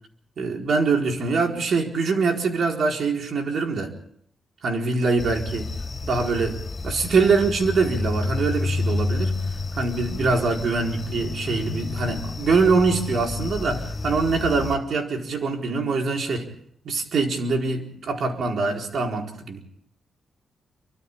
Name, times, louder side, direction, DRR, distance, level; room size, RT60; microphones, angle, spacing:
voice 1, 0.4-3.9 4.6-5.7 6.0-9.3 9.7-16.5 16.8-19.6, right 4 dB, 60° right, 1 dB, 4.3 m, -24 dB
sound 1, 5.2-14.8, left 3 dB, 30° left, 4.5 m, -30 dB
30.0 x 24.5 x 3.7 m, 0.65 s
cardioid pair, 120°, 0 cm